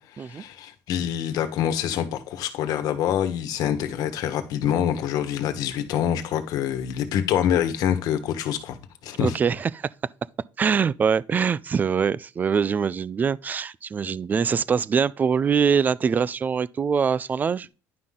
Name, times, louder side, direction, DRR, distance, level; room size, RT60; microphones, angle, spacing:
voice 1, 0.1-8.8 9.0-9.3, left 9 dB, 65° left, 1.3 m, -26 dB
voice 2, 9.2-9.9 10.6-17.7, right 6 dB, 25° right, 0.4 m, -23 dB
10.5 x 5.8 x 3.7 m
cardioid pair, 135°, 7 cm